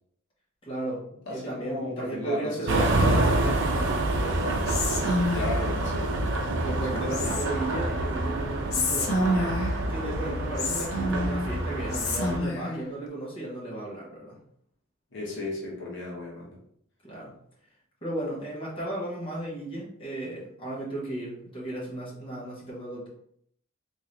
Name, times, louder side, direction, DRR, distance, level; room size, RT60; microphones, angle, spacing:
voice 1, 0.6-4.7 6.5-9.2 9.9-14.4 17.0-17.3 18.0-23.1, right 1 dB, 25° left, -6 dB, 1.2 m, -35 dB
voice 2, 1.3-3.2 5.3-7.4 15.1-16.6, left 2 dB, 60° left, -5 dB, 1.0 m, -35 dB
sound 1, 2.7-12.4, right 2 dB, 60° right, 0.6 m, -27 dB
Whispering, 4.7-5.8 7.1-7.8 8.7-9.9 10.6-11.5 11.9-12.8, left 1 dB, 90° left, 0.7 m, -28 dB
3.8 x 2.7 x 3.1 m, 0.70 s
head